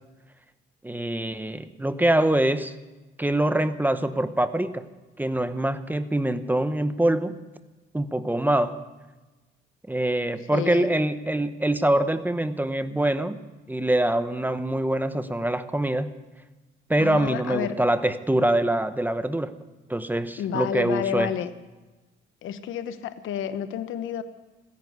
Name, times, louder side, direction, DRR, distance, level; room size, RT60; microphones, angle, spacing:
voice 1, 0.8-2.7 3.2-4.8 5.2-7.3 7.9-8.8 9.9-13.4 13.7-16.1 16.9-19.5 19.9-21.3, right 1 dB, 10° right, 12 dB, 0.9 m, -24 dB
voice 2, 10.5-10.9 17.0-17.8 20.4-21.5 22.4-24.2, left 9 dB, 85° left, 11 dB, 1.1 m, -30 dB
16.0 x 10.5 x 8.0 m, 1.2 s
cardioid pair, 90°, 20 cm